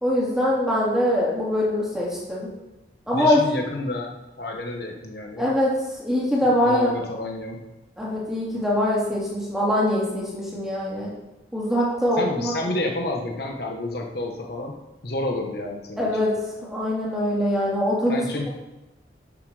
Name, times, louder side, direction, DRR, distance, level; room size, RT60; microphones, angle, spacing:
voice 1, 0.0-2.5 3.1-3.4 5.4-5.7 6.0-6.9 8.0-11.1 11.5-12.7 16.0-16.3 16.6-18.2, left 1 dB, 5° right, -6 dB, 3.2 m, -23 dB
voice 2, 3.1-5.5 6.4-7.7 12.1-14.7 15.0-16.1 18.1-18.5, left 2 dB, 60° left, 1 dB, 1.2 m, -30 dB
12.5 x 7.6 x 4.9 m, 1.0 s
head